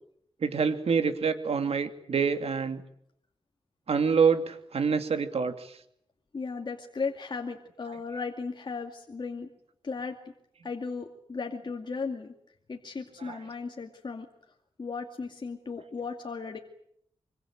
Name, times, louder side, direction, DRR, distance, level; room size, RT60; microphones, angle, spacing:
voice 1, 0.4-2.8 3.9-5.7 13.2-13.4, right 6 dB, 75° right, 8 dB, 2.7 m, -26 dB
voice 2, 6.3-9.5 9.8-10.2 10.6-12.3 12.7-14.3 14.8-16.6, left 4 dB, 50° left, 3 dB, 2.4 m, -36 dB
25.5 x 23.5 x 9.1 m, 0.72 s
wide cardioid pair, 100°, 10 cm